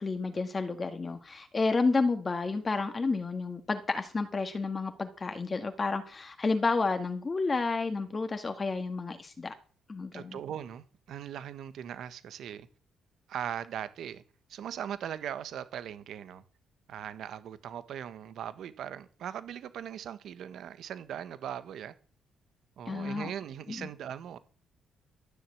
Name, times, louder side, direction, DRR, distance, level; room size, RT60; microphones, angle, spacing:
voice 1, 0.0-9.5 9.9-10.4 22.9-23.3 23.7-23.9, left 3 dB, 30° left, 1.8 m, -30 dB
voice 2, 10.1-12.7 13.3-14.2 14.5-16.4 16.9-21.9 22.8-24.4, right 9 dB, 70° right, 1.4 m, -39 dB
13.5 x 7.3 x 8.5 m
cardioid pair, 90°, 0 cm